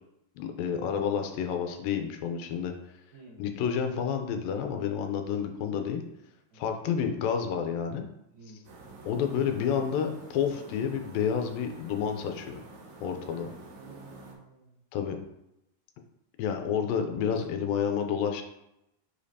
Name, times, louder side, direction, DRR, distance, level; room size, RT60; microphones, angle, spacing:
voice 1, 0.4-2.7 3.4-6.0 6.6-8.0 9.1-12.6 13.0-13.5 14.9-15.2 16.4-18.4, left 7 dB, 90° left, 5 dB, 2.5 m, -29 dB
voice 2, 8.3-8.7 13.8-14.8 17.3-17.7, right 4 dB, 85° right, -5 dB, 3.2 m, -51 dB
sound 1, 8.7-14.3, right 2 dB, 70° right, 2.4 m, -48 dB
6.9 x 5.1 x 2.8 m, 0.85 s
omnidirectional pair, 4.0 m